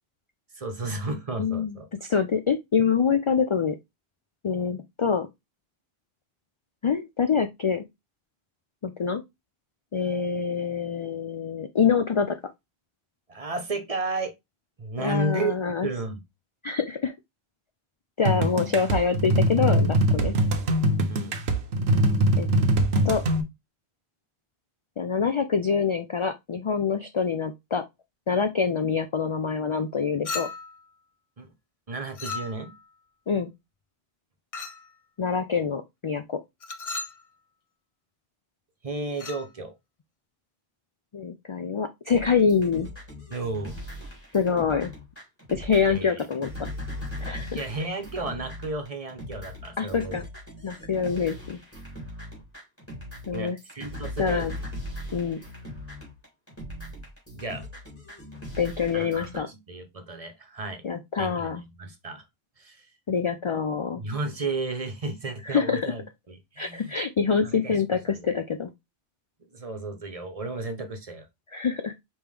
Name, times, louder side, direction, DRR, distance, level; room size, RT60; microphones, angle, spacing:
voice 1, 0.6-1.9 13.3-14.3 14.8-15.5 15.8-16.2 21.1-21.4 31.4-31.5 31.9-32.7 38.8-39.7 43.3-43.8 45.9-46.2 47.5-50.1 53.3-54.5 57.3-57.6 58.9-60.8 61.2-62.2 62.6-62.9 63.9-66.9 67.4-67.8 68.2-68.3 69.5-71.3, right 2 dB, 35° right, 0.9 m, -33 dB
voice 2, 1.4-3.8 4.4-5.3 6.8-7.8 8.8-9.2 9.9-12.4 15.0-15.9 16.6-17.1 18.2-20.4 22.4-22.5 23.0-23.2 25.0-27.8 28.3-30.5 33.3-33.5 35.2-36.4 41.1-42.9 44.3-44.9 45.5-46.7 47.2-47.6 49.8-50.2 50.6-51.6 53.3-53.6 54.2-54.5 55.1-55.4 58.6-59.5 60.8-61.6 63.1-64.0 65.4-65.9 66.6-68.7 71.5-71.9, left 6 dB, 55° left, 0.3 m, -25 dB
sound 1, 18.2-23.4, right 1 dB, 85° right, 1.1 m, -22 dB
Chink clink, 30.3-30.8 32.2-32.8 34.5-34.9 36.6-37.2 39.1-39.5, left 4 dB, 40° left, 0.7 m, -35 dB
sound 2, 42.1-59.4, left 1 dB, 15° left, 2.3 m, -39 dB
5.3 x 3.0 x 3.3 m
omnidirectional pair, 1.0 m